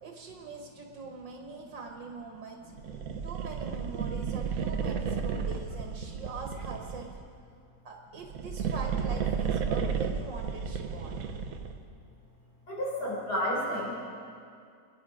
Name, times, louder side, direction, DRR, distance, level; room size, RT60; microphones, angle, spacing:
voice 1, 0.0-2.7 3.2-7.1 7.9-11.2, right 4 dB, 80° right, 2 dB, 2.1 m, -42 dB
sound 1, 2.8-7.2 8.1-11.8, right 6 dB, 55° right, 1.2 m, -33 dB
voice 2, 12.7-14.1, equal, 60° left, -5 dB, 5.2 m, -31 dB
25.5 x 10.5 x 5.0 m, 2.4 s
omnidirectional pair, 1.9 m